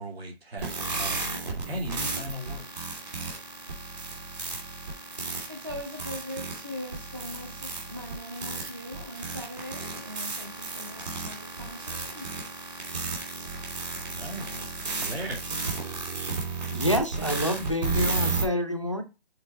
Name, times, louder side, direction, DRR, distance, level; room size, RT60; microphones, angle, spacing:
voice 1, 0.0-1.3 1.6-2.9 13.9-14.5 15.0-15.4, equal, 75° right, 2.5 m, -37 dB
sound 1, 0.6-18.4, right 3 dB, 45° right, 2.6 m, -33 dB
voice 2, 5.5-12.3, left 1 dB, 20° right, 0.6 m, -40 dB
voice 3, 16.7-19.0, equal, 30° left, 0.5 m, -27 dB
6.7 x 3.7 x 4.4 m
hypercardioid pair, 180°, 31 cm